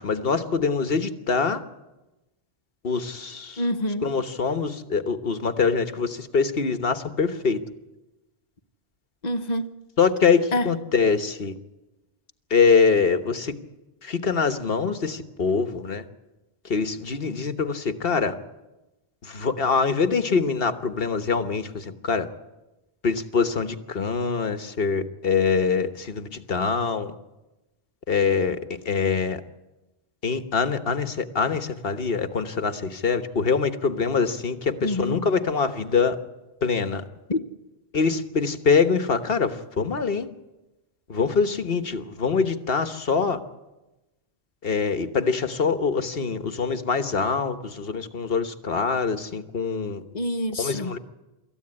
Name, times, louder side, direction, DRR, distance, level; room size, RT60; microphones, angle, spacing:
voice 1, 0.0-1.6 2.8-3.6 4.0-7.6 10.0-11.5 12.5-13.5 14.0-16.0 16.6-18.3 19.2-22.3 23.0-27.1 28.1-28.6 28.8-29.4 30.2-36.2 36.6-37.0 37.9-40.3 41.1-43.4 44.6-50.0 50.6-51.0, left 5 dB, 65° left, 9 dB, 1.5 m, -24 dB
voice 2, 3.6-4.0 9.2-9.7 10.5-10.7 34.8-35.2 37.3-37.4 50.1-50.9, left 1 dB, 45° left, 8 dB, 1.3 m, -26 dB
26.0 x 14.5 x 9.8 m, 1.1 s
omnidirectional pair, 1.0 m